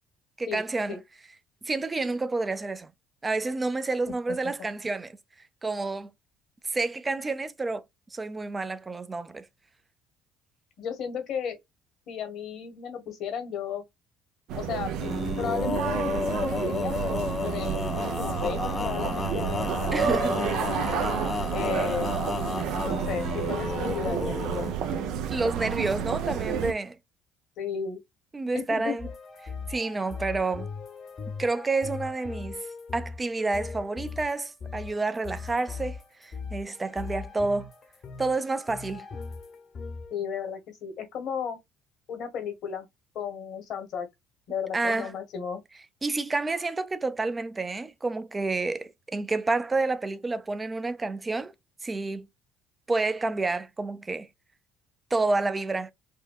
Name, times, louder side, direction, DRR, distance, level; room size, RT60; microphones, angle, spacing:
voice 1, 0.4-1.0 1.6-2.9 3.2-5.1 5.6-6.1 6.6-7.8 8.1-9.5 19.9-20.3 25.3-27.0 28.3-29.1 29.7-30.7 31.4-32.6 32.9-37.7 38.2-39.1 44.7-45.1 46.0-51.5 51.8-52.3 52.9-54.3 55.1-55.9, right 3 dB, 20° right, 0.6 m, -29 dB
voice 2, 10.8-11.6 12.1-13.8 14.5-14.9 15.4-21.0 21.5-22.3 22.8-24.9 27.6-28.0 28.5-29.1 40.1-41.6 42.1-42.9 43.1-44.1 44.5-45.6, left 7 dB, 60° left, 1.4 m, -34 dB
sound 1, 14.5-26.7, right 8 dB, 70° right, 0.6 m, -30 dB
Male singing, 14.9-24.8, left 4 dB, 30° left, 0.3 m, -32 dB
sound 2, 29.0-40.2, left 5 dB, 45° left, 1.0 m, -39 dB
4.4 x 2.2 x 2.3 m
hypercardioid pair, 70°, 0 cm